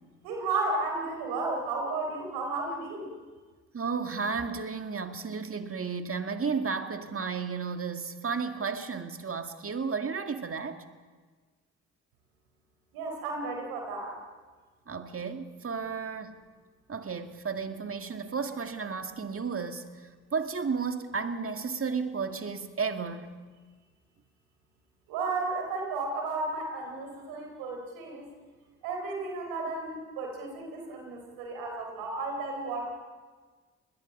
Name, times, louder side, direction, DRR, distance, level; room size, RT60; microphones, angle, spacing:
voice 1, 0.2-3.1 12.9-14.2 25.1-28.3 28.8-32.9, right 3 dB, 85° right, 4.0 m, -33 dB
voice 2, 3.7-10.8 14.9-16.4 16.9-23.3, right 5 dB, 40° right, 2.1 m, -33 dB
29.0 x 21.0 x 5.4 m
hypercardioid pair, 40°, 35 cm